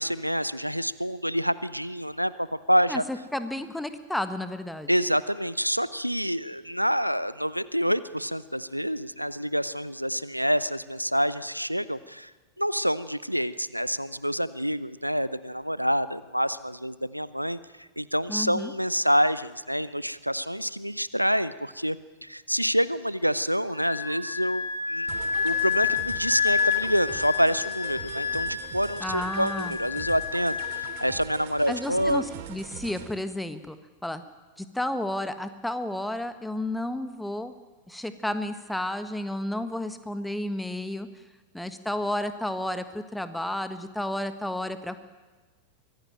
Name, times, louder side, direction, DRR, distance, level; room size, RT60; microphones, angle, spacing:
voice 1, 0.0-3.0 4.9-12.3 12.6-22.0 22.2-25.1 25.4-32.2, equal, 90° right, 17 dB, 0.6 m, -27 dB
voice 2, 3.3-4.9 18.3-18.7 29.0-29.7 31.7-33.8 34.0-34.2 34.6-37.5 37.9-41.1 41.5-45.0, left 1 dB, 5° left, 10 dB, 1.5 m, -32 dB
Wind instrument woodwind instrument, 23.8-31.2, left 6 dB, 75° left, 2.1 m, -29 dB
sound 1, 25.1-33.1, right 8 dB, 50° right, 2.5 m, -42 dB
24.0 x 16.5 x 9.0 m, 1.3 s
figure-of-eight pair, 90°, 0 cm